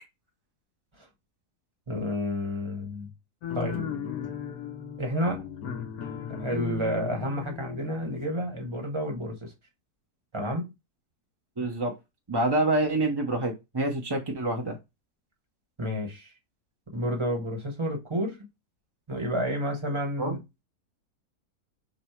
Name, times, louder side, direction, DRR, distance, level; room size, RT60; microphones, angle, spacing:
voice 1, 1.9-3.1 3.5-3.9 5.0-5.5 6.4-9.5 10.3-10.7 15.8-16.3 16.9-18.4 19.1-20.4, equal, 25° right, 0.9 m, -30 dB
sound 1, 3.4-8.7, left 8 dB, 75° left, 1.2 m, -36 dB
voice 2, 11.6-11.9 12.3-14.8 20.2-20.4, right 2 dB, 40° right, 0.3 m, -27 dB
5.2 x 2.0 x 4.4 m
omnidirectional pair, 1.7 m